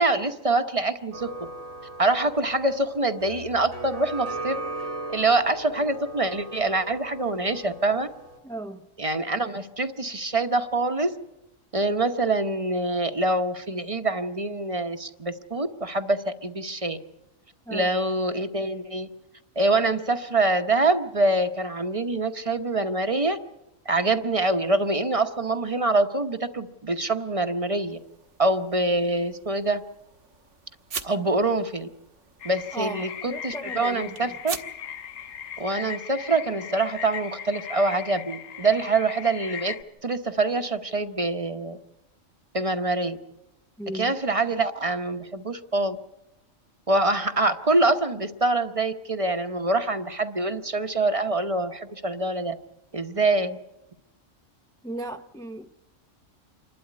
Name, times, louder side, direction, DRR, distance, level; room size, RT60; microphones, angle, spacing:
voice 1, 0.0-1.5 2.0-4.6 5.1-8.1 9.0-11.2 11.7-17.0 17.7-19.1 19.6-23.4 23.8-28.0 28.4-29.8 31.0-31.9 32.4-34.6 35.6-39.8 40.0-41.8 42.5-43.2 43.9-46.0 46.9-52.6 52.9-53.6, right 2 dB, 30° right, 0.9 m, -25 dB
sound 1, 1.1-8.4, right 2 dB, 85° right, 3.7 m, -38 dB
voice 2, 8.4-8.9 17.7-17.9 32.7-34.4 43.8-44.1 54.8-55.7, right 1 dB, 5° left, 0.5 m, -36 dB
sound 2, 27.9-35.7, right 6 dB, 70° right, 1.6 m, -43 dB
sound 3, 32.4-39.8, left 8 dB, 80° left, 1.4 m, -38 dB
27.5 x 12.0 x 9.6 m
omnidirectional pair, 1.3 m